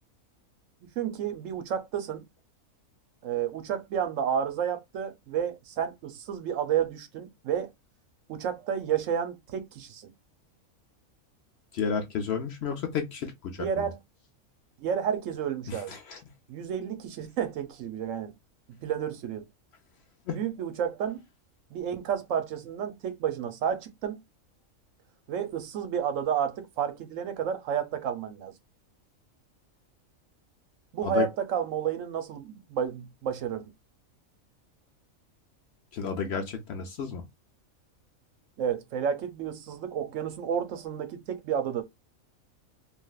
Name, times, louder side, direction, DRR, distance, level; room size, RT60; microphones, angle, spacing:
voice 1, 1.0-2.2 3.2-7.7 8.3-10.1 13.6-14.0 14.8-15.9 16.5-18.3 18.8-19.5 20.3-21.2 21.7-24.2 25.3-28.5 30.9-33.7 38.6-41.8, right 8 dB, 70° right, 0.9 m, -31 dB
voice 2, 11.7-13.5 15.7-15.8 16.1-16.2 20.3-20.4 31.0-31.3 35.9-37.2, left 6 dB, 60° left, 0.8 m, -31 dB
3.2 x 2.5 x 2.2 m
omnidirectional pair, 1.5 m